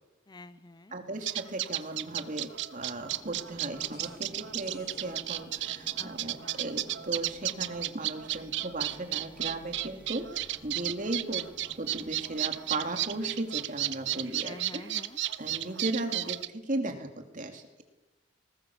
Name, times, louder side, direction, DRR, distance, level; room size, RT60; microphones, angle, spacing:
voice 1, 0.3-1.0 6.0-6.1 6.4-6.7 14.4-15.2, left 2 dB, 20° left, 14 dB, 0.6 m, -47 dB
voice 2, 0.9-11.5 11.8-14.8 15.4-17.8, right 2 dB, 45° right, 5 dB, 2.6 m, -36 dB
sound 1, 1.3-16.5, right 14 dB, 70° right, 0.7 m, -33 dB
sound 2, 3.0-13.3, equal, 10° right, 3.2 m, -53 dB
sound 3, 3.8-10.1, left 1 dB, 55° left, 5.0 m, -59 dB
20.0 x 19.0 x 7.1 m, 1.1 s
head